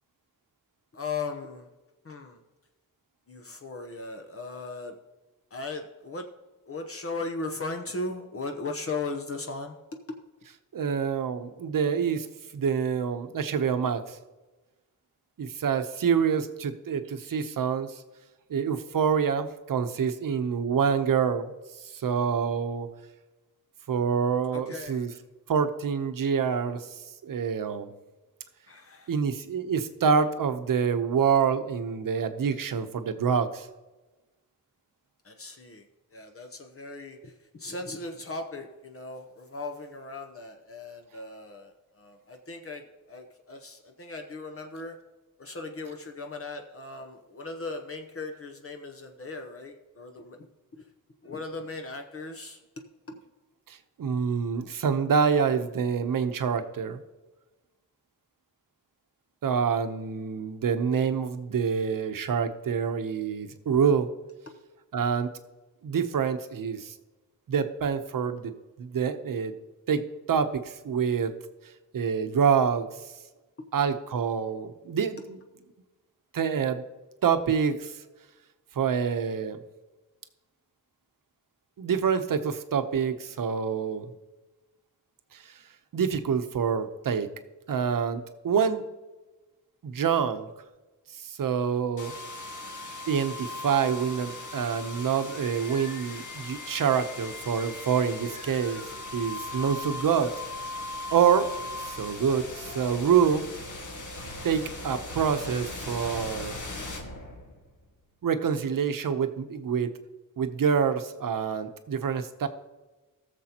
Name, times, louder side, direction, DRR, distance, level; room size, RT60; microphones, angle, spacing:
voice 1, 0.9-1.7 2.0-2.4 3.3-4.9 5.5-6.3 6.7-9.8 10.1-10.2 24.5-25.1 28.7-29.1 35.2-35.8 36.1-45.0 45.4-50.4 50.7-50.8 51.2-52.6 53.1-53.2, left 3 dB, 45° left, 4 dB, 0.9 m, -37 dB
voice 2, 10.7-12.3 12.5-14.2 15.4-18.0 18.5-21.5 21.8-22.9 23.9-25.1 25.5-27.9 29.1-33.7 53.7-57.0 59.4-64.1 64.9-65.3 65.8-66.9 67.5-68.5 68.8-69.5 69.9-71.3 71.9-72.9 73.7-75.4 76.3-76.8 77.2-78.0 78.7-79.6 81.8-84.1 85.3-85.5 85.9-87.3 87.7-88.8 89.8-90.5 91.1-92.1 93.1-98.8 99.1-100.3 101.1-101.5 101.8-103.5 104.4-106.6 108.2-109.9 110.4-112.5, right 7 dB, 90° right, 8 dB, 0.9 m, -26 dB
sound 1, 92.0-107.8, left 2 dB, 65° left, 1.9 m, -39 dB
18.5 x 6.9 x 2.9 m, 1.2 s
wide cardioid pair, 180°, 32 cm